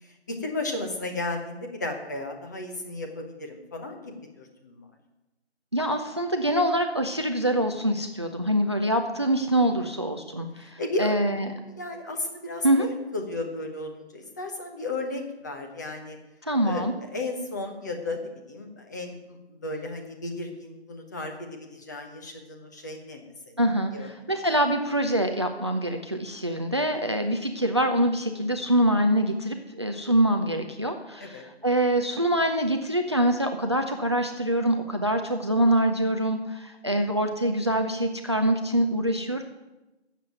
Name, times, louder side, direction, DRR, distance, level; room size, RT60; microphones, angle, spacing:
voice 1, 0.0-4.9 9.8-9.9 10.6-11.2 11.6-16.2 16.6-23.5 23.9-24.1 31.2-31.4 36.9-37.0, left 2 dB, 15° left, 3 dB, 1.0 m, -34 dB
voice 2, 5.7-11.5 12.6-12.9 16.4-16.9 23.6-39.4, right 1 dB, 25° right, 6 dB, 0.6 m, -25 dB
12.5 x 7.5 x 9.2 m, 1.0 s
figure-of-eight pair, 155°, 34 cm